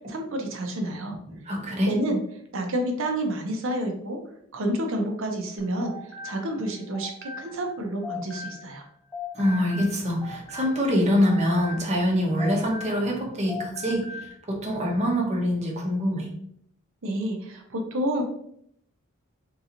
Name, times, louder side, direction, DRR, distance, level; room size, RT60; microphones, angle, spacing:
voice 1, 0.1-1.2 1.9-2.2 2.5-4.2 4.5-5.9 6.2-8.8 17.0-18.2, right 1 dB, 65° right, 3 dB, 0.7 m, -29 dB
voice 2, 1.3-1.9 9.3-16.3, equal, 30° right, -1 dB, 0.8 m, -25 dB
sound 1, 5.6-8.8 9.1-13.2 13.5-14.3, left 4 dB, 5° left, 0.7 m, -39 dB
3.8 x 2.9 x 2.5 m, 0.69 s
head